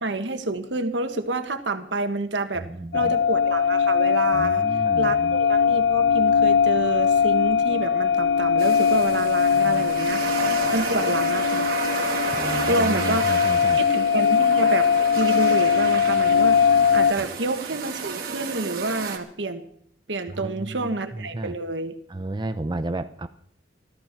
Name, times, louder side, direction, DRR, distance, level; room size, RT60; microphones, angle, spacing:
voice 1, 0.0-2.7 2.9-4.6 5.0-10.4 10.7-11.7 12.7-13.2 13.8-14.9 15.2-19.6 20.1-21.9, right 2 dB, 75° right, 7 dB, 1.6 m, -28 dB
voice 2, 2.5-3.2 4.3-5.4 9.5-9.9 12.3-13.8 20.3-21.5 22.1-23.3, right 2 dB, 25° right, 10 dB, 0.5 m, -33 dB
sound 1, 2.9-17.1, left 7 dB, 75° left, 0.8 m, -21 dB
sound 2, 8.6-19.2, right 5 dB, 55° right, 2.3 m, -32 dB
17.0 x 13.5 x 6.0 m, 0.66 s
head